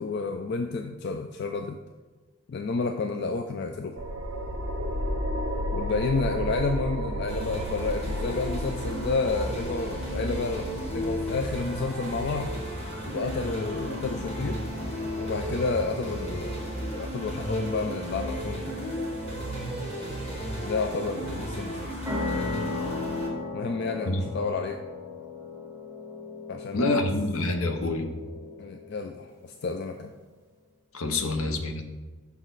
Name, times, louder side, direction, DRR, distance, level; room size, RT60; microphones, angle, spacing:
voice 1, 0.0-1.8 2.5-4.0 5.7-12.5 13.1-14.6 15.2-16.7 16.9-18.8 20.6-21.9 23.5-24.8 26.5-27.1 28.6-30.1 31.2-31.3, left 4 dB, 50° left, 5 dB, 0.3 m, -30 dB
sound 1, 4.0-15.0, right 1 dB, 65° right, 0.7 m, -34 dB
sound 2, 7.3-23.3, equal, 30° left, 1.3 m, -33 dB
sound 3, 22.0-29.3, left 3 dB, 10° right, 1.0 m, -36 dB
voice 2, 26.7-28.1 30.9-31.9, left 2 dB, 70° left, 6 dB, 0.7 m, -27 dB
6.2 x 5.7 x 3.9 m, 1.3 s
head